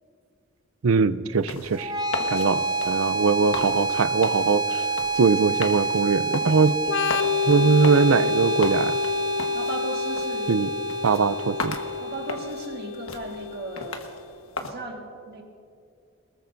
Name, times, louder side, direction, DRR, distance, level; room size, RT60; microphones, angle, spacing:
voice 1, 0.8-1.9 2.3-4.8 5.2-6.7 7.5-9.0 10.5-10.7 11.0-11.8, right 5 dB, 85° right, 14 dB, 0.5 m, -21 dB
sound 1, 1.3-14.7, left 3 dB, 85° left, 1.4 m, -38 dB
sound 2, 1.7-12.7, right 3 dB, 20° right, 0.4 m, -28 dB
voice 2, 2.3-2.7 9.5-10.5 12.0-14.1 14.6-15.4, right 2 dB, 50° right, 1 dB, 1.7 m, -37 dB
Organ, 6.8-14.3, left 9 dB, 60° left, 0.4 m, -29 dB
23.0 x 21.0 x 2.6 m, 2.4 s
head